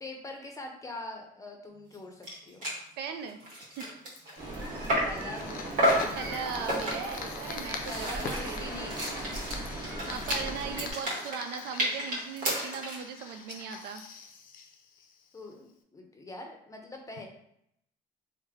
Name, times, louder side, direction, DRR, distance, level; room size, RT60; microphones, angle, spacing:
voice 1, 0.0-2.7 5.0-7.0 7.9-9.0 10.2-10.5 15.3-17.3, left 2 dB, 20° left, 2 dB, 0.7 m, -43 dB
sound 1, 1.9-2.0 2.2-2.4 2.6-2.8 3.3-5.2 5.8-6.1 6.7-7.2 7.6-13.1, right 1 dB, 55° right, 1.3 m, -31 dB
voice 2, 3.0-3.4 3.8-3.9 6.2-9.0 10.1-14.0, right 6 dB, 75° right, 7 dB, 0.4 m, -38 dB
Fire, 4.2-15.5, left 5 dB, 55° left, 0.5 m, -42 dB
sound 2, 4.4-10.9, right 1 dB, 25° right, 1.2 m, -38 dB
3.1 x 2.1 x 3.5 m, 0.74 s
cardioid pair, 110°, 17 cm